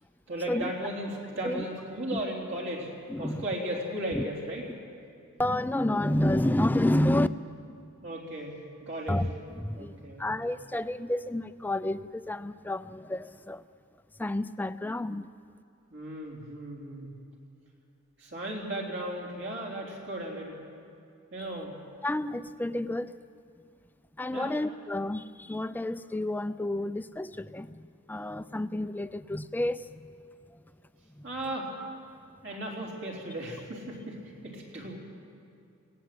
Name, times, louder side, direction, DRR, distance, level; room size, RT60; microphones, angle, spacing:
voice 1, 0.3-2.9 3.2-4.6 8.0-9.2 9.8-10.3 15.9-17.1 18.2-20.6 21.3-21.8 24.3-24.5 31.2-31.7 32.4-35.0, right 1 dB, 60° right, -1 dB, 3.9 m, -36 dB
voice 2, 3.1-3.4 4.1-4.2 5.4-7.3 9.1-13.6 14.2-15.3 22.0-23.2 24.2-30.1 31.2-31.3, left 1 dB, 10° left, 13 dB, 0.4 m, -30 dB
20.0 x 17.0 x 7.8 m, 2.5 s
head